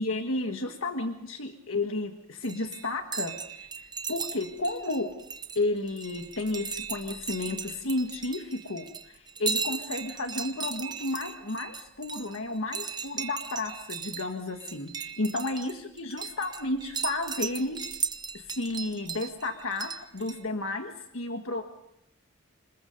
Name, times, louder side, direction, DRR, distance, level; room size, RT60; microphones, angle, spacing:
voice 1, 0.0-5.1 5.5-18.1 18.3-21.6, left 2 dB, 75° left, 5 dB, 1.5 m, -32 dB
sound 1, 2.4-20.4, right 6 dB, 20° right, 0.9 m, -37 dB
27.0 x 20.5 x 5.3 m, 0.79 s
head